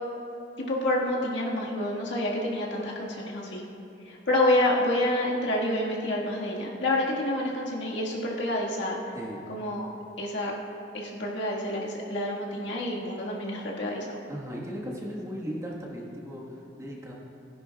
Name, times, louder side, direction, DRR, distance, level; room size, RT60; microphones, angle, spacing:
voice 1, 0.6-3.6 4.0-9.0 9.5-9.9 10.2-10.5 10.9-14.2, left 1 dB, 80° left, -3 dB, 1.7 m, -28 dB
voice 2, 14.3-17.1, equal, 15° right, -3 dB, 1.4 m, -37 dB
16.5 x 10.5 x 2.3 m, 2.8 s
head